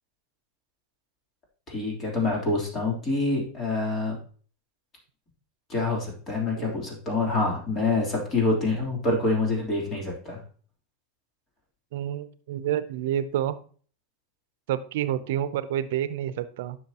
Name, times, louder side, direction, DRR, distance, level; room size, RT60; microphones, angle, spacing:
voice 1, 1.7-4.2 5.7-10.4, left 3 dB, 30° left, -1 dB, 3.4 m, -26 dB
voice 2, 11.9-13.6 14.7-16.8, right 11 dB, 70° right, 14 dB, 0.7 m, -29 dB
9.5 x 6.3 x 3.0 m, 0.43 s
supercardioid pair, 130°, 0 cm